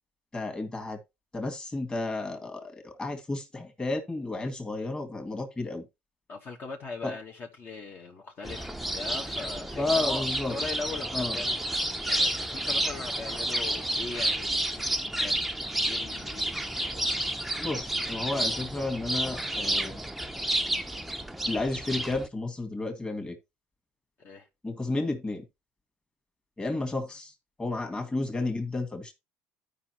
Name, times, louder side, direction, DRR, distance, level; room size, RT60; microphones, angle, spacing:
voice 1, 0.3-1.0 1.3-5.8 7.0-7.1 9.8-10.5 11.1-11.4 17.6-20.0 21.5-23.4 24.6-25.4 26.6-27.3 27.6-29.1, left 2 dB, 15° left, 1.9 m, -32 dB
voice 2, 6.3-11.6 12.0-17.2 24.2-24.5, left 3 dB, 45° left, 1.4 m, -40 dB
sound 1, 8.4-22.3, right 1 dB, ahead, 0.6 m, -30 dB
13.0 x 5.2 x 2.9 m
supercardioid pair, 95°, 5 cm